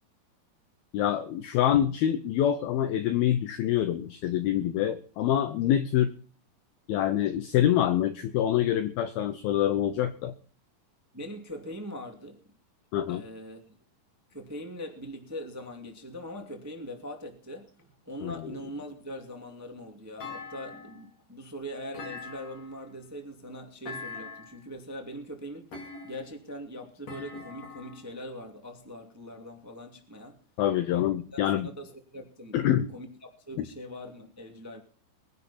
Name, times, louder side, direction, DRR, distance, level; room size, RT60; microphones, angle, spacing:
voice 1, 0.9-6.2 6.9-10.3 12.9-13.2 18.2-18.6 30.6-31.7 32.5-32.9 33.6-33.7, left 11 dB, 75° left, 2.4 m, -26 dB
voice 2, 11.1-12.4 13.1-13.6 14.3-17.8 18.0-25.7 26.0-30.4 31.3-34.8, equal, 15° right, 0.6 m, -42 dB
Thump thud, 20.2-21.1 21.9-22.9 23.9-24.6 25.7-26.4 27.1-28.1, left 4 dB, 40° left, 5.1 m, -42 dB
22.5 x 10.5 x 4.3 m
omnidirectional pair, 5.1 m